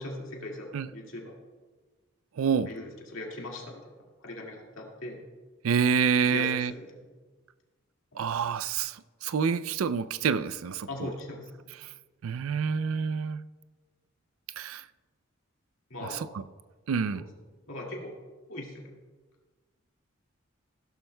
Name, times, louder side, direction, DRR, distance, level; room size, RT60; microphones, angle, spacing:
voice 1, 0.0-1.3 2.7-3.9 4.2-5.2 6.2-7.0 8.1-8.2 10.9-11.5 15.9-16.3 17.1-17.2 17.7-18.1 18.5-18.9, left 1 dB, 70° left, 2.0 m, -39 dB
voice 2, 2.4-2.7 5.6-6.7 8.2-11.1 12.2-13.4 14.6-14.8 16.0-16.3 16.9-17.2, right 6 dB, 75° right, 0.4 m, -27 dB
16.0 x 12.0 x 2.2 m
head